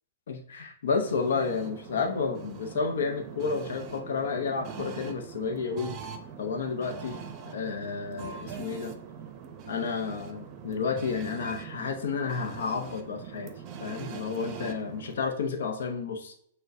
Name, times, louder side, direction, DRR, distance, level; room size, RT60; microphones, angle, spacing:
voice 1, 0.3-6.0 6.4-7.2 7.5-8.9 9.7-13.5 13.8-16.5, left 5 dB, 75° left, 5 dB, 0.6 m, -31 dB
sound 1, 1.0-15.2, right 7 dB, 35° right, 0.6 m, -42 dB
6.1 x 2.2 x 2.6 m, 0.67 s
hypercardioid pair, 130°, 0 cm